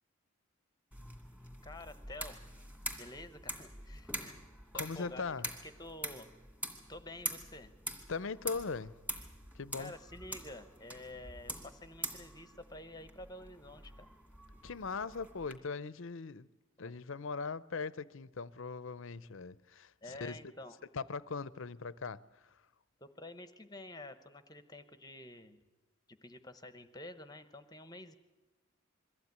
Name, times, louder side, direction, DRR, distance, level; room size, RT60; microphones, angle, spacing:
sound 1, 0.9-15.6, right 1 dB, 5° right, 2.2 m, -45 dB
voice 1, 1.6-2.4 3.0-4.4 4.7-5.3 5.6-6.3 6.9-7.7 9.8-14.1 16.8-16.9 20.0-20.8 23.0-25.6 26.1-28.1, left 1 dB, 15° left, 0.9 m, -49 dB
voice 2, 4.7-5.5 8.1-8.9 9.5-9.9 14.6-16.5 16.8-20.5 20.9-22.6, left 4 dB, 60° left, 0.6 m, -40 dB
22.5 x 15.0 x 9.5 m
head